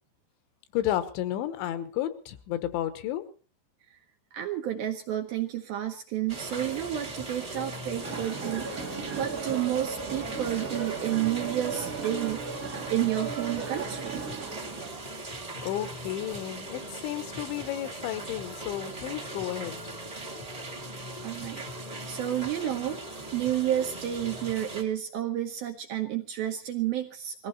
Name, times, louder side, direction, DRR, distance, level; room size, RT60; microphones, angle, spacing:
voice 1, 0.7-3.2 15.6-19.8, left 12 dB, 80° left, 12 dB, 3.5 m, -32 dB
voice 2, 4.3-8.8 9.1-12.4 12.9-14.3 21.2-23.0 23.3-27.5, right 12 dB, 75° right, 4 dB, 2.3 m, -31 dB
sound 1, 6.3-24.8, right 1 dB, 15° right, 1.4 m, -39 dB
sound 2, 8.0-14.9, right 5 dB, 50° right, 0.9 m, -36 dB
21.5 x 15.0 x 4.1 m, 0.38 s
omnidirectional pair, 5.4 m